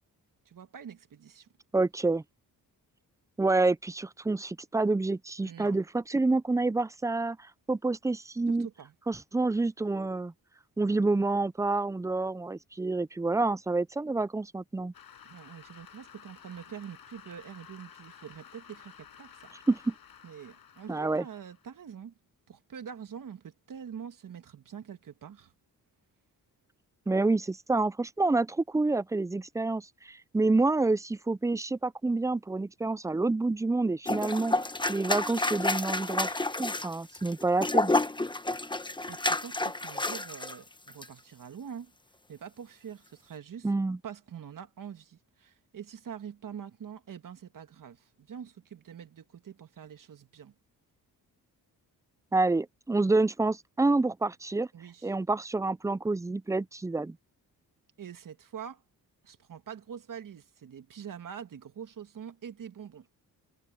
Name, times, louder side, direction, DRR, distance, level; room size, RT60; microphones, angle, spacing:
voice 1, 0.4-1.5 5.4-5.8 8.5-8.9 15.2-19.5 20.2-22.1 22.5-25.5 39.1-41.9 42.3-43.7 44.0-50.5 54.7-55.1 58.0-58.8 59.2-63.1, right 8 dB, 55° right, 1.6 m, -45 dB
voice 2, 1.7-2.2 3.4-7.4 7.7-8.7 9.1-10.3 10.8-14.9 19.7-19.9 20.9-21.2 27.1-34.6 34.9-37.9 43.6-44.0 52.3-54.7 55.0-57.2, right 3 dB, 10° right, 0.4 m, -28 dB
Cheering / Applause, 14.9-21.8, left 8 dB, 70° left, 6.0 m, -53 dB
sound 1, 34.1-40.6 40.9-41.1, left 2 dB, 10° left, 1.1 m, -30 dB
cardioid pair, 85°, 38 cm